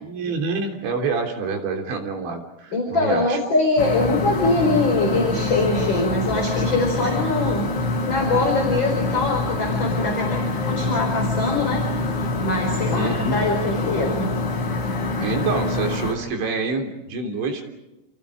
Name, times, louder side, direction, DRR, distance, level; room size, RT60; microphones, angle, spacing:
voice 1, 0.0-3.4 12.9-13.4 15.2-17.6, right 4 dB, 70° right, 4 dB, 5.5 m, -27 dB
voice 2, 2.7-11.8 12.4-14.4, left 2 dB, 25° left, 1 dB, 4.7 m, -23 dB
sound 1, 3.8-16.1, left 2 dB, 70° left, 7.6 m, -25 dB
30.0 x 29.5 x 4.9 m, 0.97 s
omnidirectional pair, 5.6 m